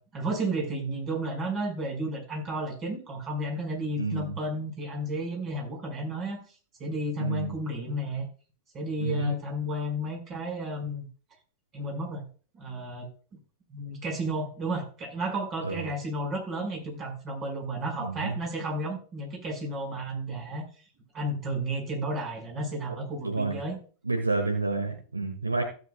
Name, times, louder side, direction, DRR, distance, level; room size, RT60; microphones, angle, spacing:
voice 1, 0.0-6.4 6.8-8.3 8.7-11.1 11.7-12.3 12.5-13.4 13.7-20.6 21.1-23.8, right 1 dB, 30° right, 1 dB, 5.1 m, -32 dB
voice 2, 4.0-4.3 7.2-7.5 9.0-9.3 15.6-15.8 18.0-18.4 23.2-23.6 24.0-25.6, right 3 dB, 80° right, 4 dB, 1.8 m, -29 dB
16.0 x 8.2 x 2.3 m, 0.38 s
figure-of-eight pair, 95°, 0 cm